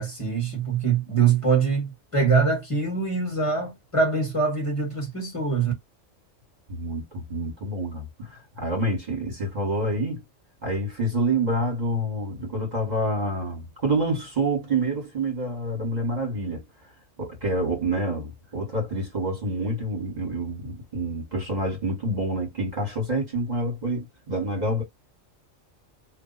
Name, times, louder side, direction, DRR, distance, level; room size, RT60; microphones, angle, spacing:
voice 1, 0.0-5.7, right 5 dB, 25° left, 1.6 m, -24 dB
voice 2, 6.7-10.2 10.6-16.9 17.2-24.8, right 1 dB, 35° right, 1.7 m, -27 dB
2.8 x 2.6 x 4.0 m
omnidirectional pair, 1.3 m